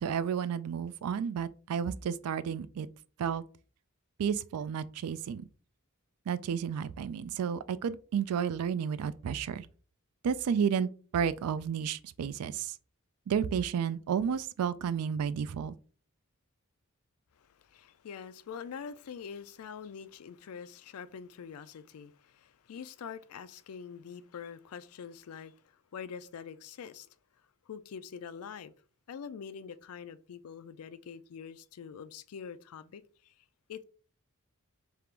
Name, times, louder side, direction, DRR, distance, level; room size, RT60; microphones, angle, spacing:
voice 1, 0.0-2.9 3.2-3.4 4.2-5.5 6.3-9.7 10.2-12.7 13.3-15.7, right 7 dB, 85° right, 0.3 m, -32 dB
voice 2, 17.4-25.6 25.9-27.1 27.7-28.7 29.1-33.3 33.7-33.8, left 7 dB, 80° left, 0.4 m, -45 dB
3.5 x 2.4 x 4.4 m
head